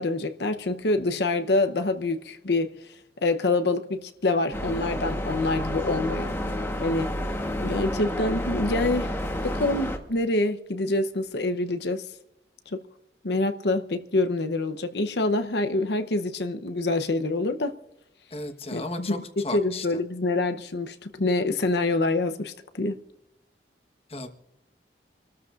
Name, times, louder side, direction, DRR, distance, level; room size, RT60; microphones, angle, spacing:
voice 1, 0.0-2.7 3.2-6.4 6.8-7.1 7.6-9.1 9.4-12.1 12.7-12.8 13.2-17.7 18.7-23.0, left 2 dB, 70° left, 0.8 m, -26 dB
sound 1, 4.5-10.0, left 1 dB, 15° left, 1.2 m, -30 dB
voice 2, 18.3-20.0 24.1-24.3, left 2 dB, 35° left, 1.2 m, -35 dB
28.5 x 13.5 x 2.5 m
head